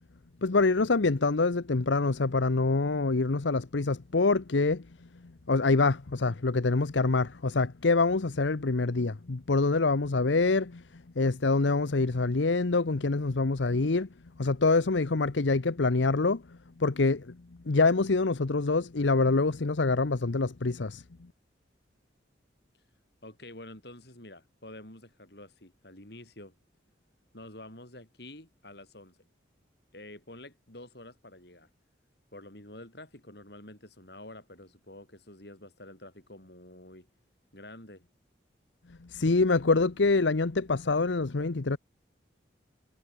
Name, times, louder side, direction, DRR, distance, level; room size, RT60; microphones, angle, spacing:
voice 1, 0.4-4.9 5.5-14.1 14.4-17.4 17.7-21.0 39.0-41.8, left 3 dB, 80° left, 0.8 m, -26 dB
voice 2, 23.2-26.5 27.3-29.3 29.9-31.7 32.3-37.1 37.5-38.1, left 1 dB, 60° left, 6.5 m, -48 dB
head